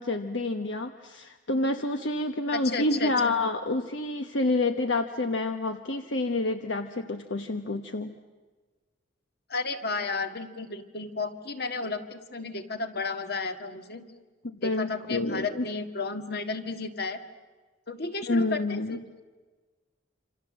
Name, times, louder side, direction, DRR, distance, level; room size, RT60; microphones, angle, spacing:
voice 1, 0.0-8.1 14.4-15.6 18.3-19.0, left 2 dB, 70° left, 7 dB, 1.1 m, -28 dB
voice 2, 2.5-3.3 9.5-14.0 14.6-17.2 17.9-19.0, left 3 dB, 55° left, 8 dB, 1.8 m, -33 dB
27.5 x 27.0 x 7.5 m, 1.3 s
head